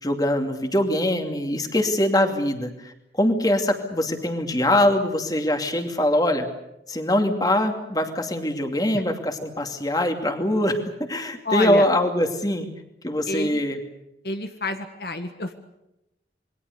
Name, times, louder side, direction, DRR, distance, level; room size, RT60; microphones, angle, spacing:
voice 1, 0.0-6.5 6.9-12.7 13.0-13.8, left 1 dB, 20° left, 5 dB, 2.6 m, -23 dB
voice 2, 11.4-11.8 13.3-13.6 14.2-15.5, left 2 dB, 60° left, 7 dB, 1.7 m, -28 dB
27.5 x 22.5 x 6.8 m, 0.88 s
head